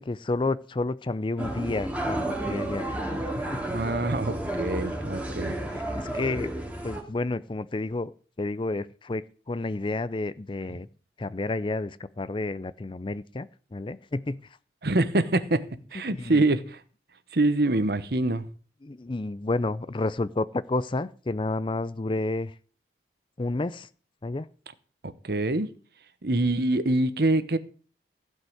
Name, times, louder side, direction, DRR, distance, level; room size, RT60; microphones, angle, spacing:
voice 1, 0.0-3.6 5.4-5.5 5.7-6.5 6.8-8.1 8.4-10.9 11.2-14.6 16.1-16.4 18.8-22.5 23.4-23.9 24.2-24.5, left 2 dB, 30° left, 0.5 m, -30 dB
sound 1, 1.4-7.0, right 1 dB, 10° right, 2.5 m, -31 dB
voice 2, 3.7-5.6 14.8-15.6 15.9-16.8 17.3-18.5 25.0-25.7 26.2-27.6, right 2 dB, 60° right, 1.0 m, -25 dB
15.5 x 5.4 x 7.9 m
head